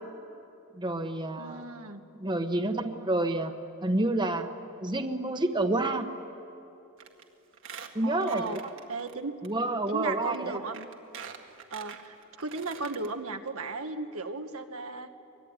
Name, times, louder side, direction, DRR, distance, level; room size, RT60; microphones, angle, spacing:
voice 1, 0.7-1.7 2.2-3.5 3.8-4.5 4.8-6.1 7.9-8.7 9.4-10.6, right 2 dB, 20° right, 6 dB, 1.2 m, -29 dB
voice 2, 1.3-2.0 8.0-8.6 8.9-9.3 9.9-10.9 11.7-15.1, right 3 dB, 85° right, 6 dB, 1.5 m, -36 dB
Squeak, 7.0-7.2 7.5-9.1 9.4-9.5 10.3-10.4 10.7-13.1 13.5-13.6 13.8-13.9, right 7 dB, 65° right, 1.9 m, -45 dB
24.0 x 22.5 x 9.7 m, 2.8 s
head